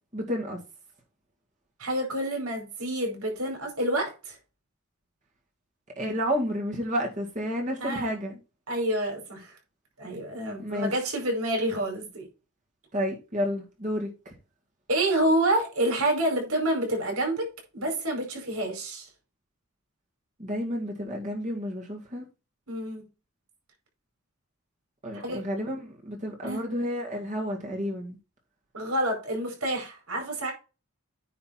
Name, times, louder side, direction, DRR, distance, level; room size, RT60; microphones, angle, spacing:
voice 1, 0.1-0.6 6.0-8.4 10.6-10.9 12.9-14.3 20.4-22.2 25.0-28.2, equal, 35° right, 2.0 m, -31 dB
voice 2, 1.8-4.4 7.8-8.1 8.7-9.5 10.0-12.3 14.9-17.5 17.7-19.1 22.7-23.0 25.1-25.4 26.4-26.6 28.7-30.5, right 1 dB, 75° right, 4.9 m, -28 dB
9.5 x 4.0 x 5.9 m
head